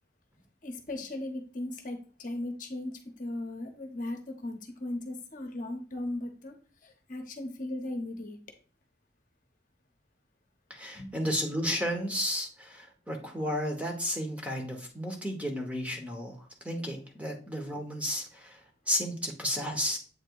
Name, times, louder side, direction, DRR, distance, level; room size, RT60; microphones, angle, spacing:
voice 1, 0.6-6.5 6.8-8.4 10.9-11.3, left 1 dB, 45° left, 4 dB, 0.9 m, -37 dB
voice 2, 10.7-16.4 16.6-20.0, equal, 5° right, 2 dB, 0.9 m, -33 dB
7.9 x 2.9 x 4.6 m, 0.41 s
head